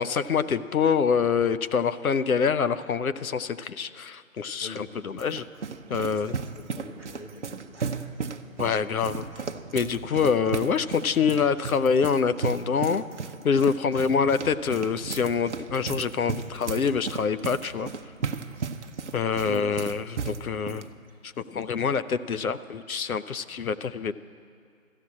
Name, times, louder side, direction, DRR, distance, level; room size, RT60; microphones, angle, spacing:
voice 1, 0.0-5.4 5.9-6.4 8.6-9.2 9.7-13.0 13.4-17.9 19.1-20.8 21.2-24.1, left 6 dB, 80° left, 13 dB, 0.7 m, -25 dB
sound 1, 4.8-20.9, right 5 dB, 55° right, 0.7 m, -35 dB
voice 2, 6.0-8.2 18.6-18.7 19.5-19.7 21.1-21.2, left 2 dB, 45° left, 0 dB, 1.3 m, -43 dB
13.5 x 7.4 x 9.6 m, 2.3 s
figure-of-eight pair, 170°, 42 cm